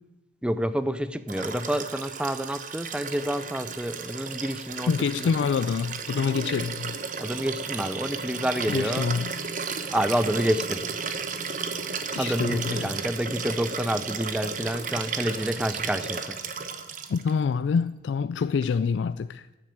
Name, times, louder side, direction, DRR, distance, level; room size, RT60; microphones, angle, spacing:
voice 1, 0.4-5.5 7.2-9.1 9.9-10.9 12.2-16.4, equal, 5° right, 0.5 m, -28 dB
Liquid, 1.3-17.3 18.6-18.7, right 5 dB, 45° right, 1.0 m, -34 dB
Laughter, 4.3-8.0, right 2 dB, 75° right, 1.0 m, -48 dB
voice 2, 4.9-7.0 8.7-9.3 12.1-13.0 17.1-19.6, left 5 dB, 75° left, 0.3 m, -26 dB
12.0 x 7.6 x 8.6 m
head